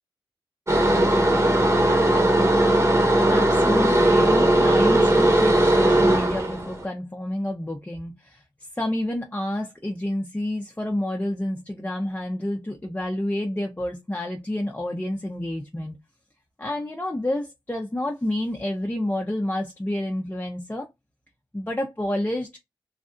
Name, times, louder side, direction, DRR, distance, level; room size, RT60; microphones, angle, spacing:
sound 1, 0.7-6.8, right 1 dB, 35° right, 1.2 m, -18 dB
voice 1, 3.3-8.4 8.7-16.0 16.6-20.9 21.5-22.6, left 1 dB, 20° left, 0.7 m, -29 dB
3.3 x 2.6 x 2.5 m
cardioid pair, 55°, 8 cm